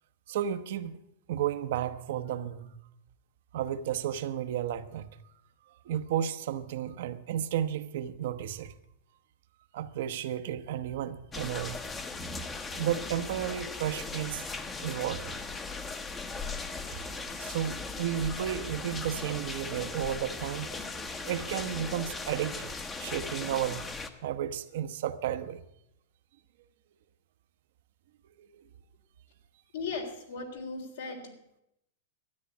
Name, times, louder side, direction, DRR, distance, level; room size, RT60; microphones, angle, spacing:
voice 1, 0.3-1.0 1.3-2.7 3.5-5.1 5.8-8.7 9.7-11.8 12.8-15.3 16.9-17.0 17.4-20.8 21.2-23.9 24.2-25.6 28.4-28.6, right 10 dB, 65° right, 0.9 m, -33 dB
sound 1, 11.3-24.1, left 4 dB, 15° left, 0.9 m, -38 dB
voice 2, 29.7-31.3, left 4 dB, 75° left, 3.6 m, -37 dB
13.0 x 9.6 x 8.4 m
supercardioid pair, 155°, 0 cm